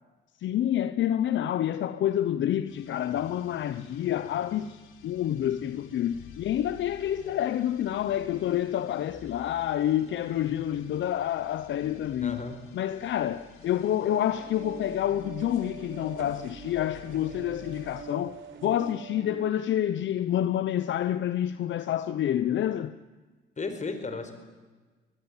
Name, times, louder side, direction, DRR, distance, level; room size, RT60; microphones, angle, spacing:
voice 1, 0.4-12.4 12.7-22.9, left 11 dB, 70° left, 0.9 m, -28 dB
sound 1, 2.7-18.1, left 6 dB, 85° left, 3.7 m, -52 dB
voice 2, 12.2-12.6 23.6-24.3, left 4 dB, 35° left, 4.8 m, -34 dB
sound 2, 13.0-18.9, right 4 dB, 75° right, 4.2 m, -56 dB
sound 3, 14.0-19.5, right 7 dB, 50° right, 1.4 m, -45 dB
24.0 x 20.0 x 9.0 m
cardioid pair, 90°, 20 cm